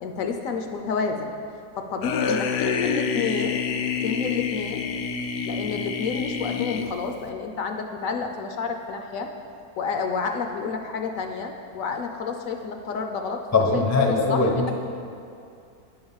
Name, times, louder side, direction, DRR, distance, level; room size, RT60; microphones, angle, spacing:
voice 1, 0.0-1.3 1.8-3.6 4.0-4.8 5.5-9.3 9.8-13.4 13.7-14.7, left 5 dB, 70° left, 4 dB, 0.9 m, -29 dB
sound 1, 2.0-7.3, left 6 dB, 85° left, 0.5 m, -27 dB
voice 2, 13.5-14.7, left 3 dB, 20° left, 0 dB, 0.4 m, -21 dB
9.4 x 3.9 x 7.1 m, 2.5 s
omnidirectional pair, 1.7 m